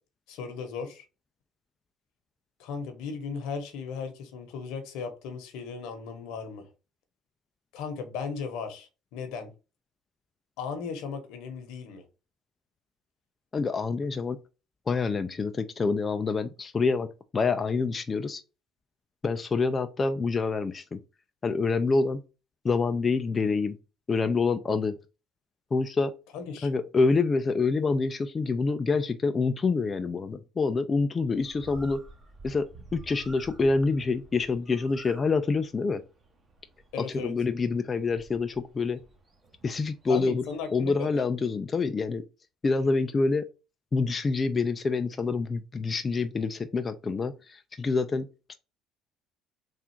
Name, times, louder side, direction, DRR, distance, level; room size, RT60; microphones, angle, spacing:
voice 1, 0.3-1.0 2.6-6.7 7.7-9.5 10.6-12.0 26.3-26.7 36.9-37.3 40.1-41.1, left 5 dB, 80° left, 1.0 m, -36 dB
voice 2, 13.5-14.4 14.9-17.1 17.3-18.4 19.2-21.0 21.4-22.2 22.6-23.8 24.1-25.0 25.7-26.1 26.6-32.0 32.4-32.7 32.9-36.0 37.0-39.0 39.6-40.4 40.7-42.2 42.6-43.5 43.9-48.3, left 4 dB, 25° left, 0.4 m, -26 dB
Bird, 31.3-40.9, right 2 dB, 25° right, 1.1 m, -51 dB
3.6 x 2.4 x 4.3 m
cardioid pair, 105°, 0 cm